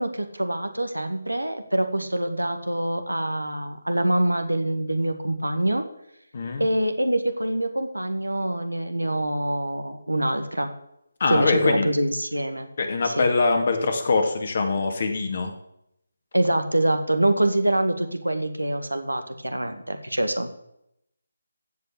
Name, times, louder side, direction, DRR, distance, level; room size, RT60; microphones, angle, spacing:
voice 1, 0.0-5.8 6.6-10.7 11.3-12.7 13.0-13.3 16.3-20.5, right 1 dB, 85° right, 7 dB, 1.8 m, -25 dB
voice 2, 6.3-6.7 11.2-11.9 12.8-15.5, left 3 dB, 45° left, 5 dB, 2.5 m, -23 dB
15.0 x 5.7 x 8.6 m, 0.78 s
figure-of-eight pair, 150°, 0 cm